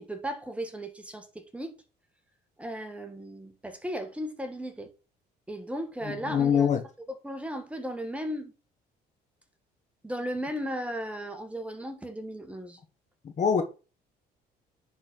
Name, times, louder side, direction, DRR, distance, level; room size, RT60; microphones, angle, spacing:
voice 1, 0.0-1.8 2.6-4.9 5.5-6.7 7.2-8.5 10.0-12.8, equal, 5° right, 1.7 m, -36 dB
voice 2, 6.0-6.8 13.2-13.6, left 7 dB, 45° left, 1.3 m, -24 dB
10.0 x 4.3 x 4.6 m
cardioid pair, 110°, 17 cm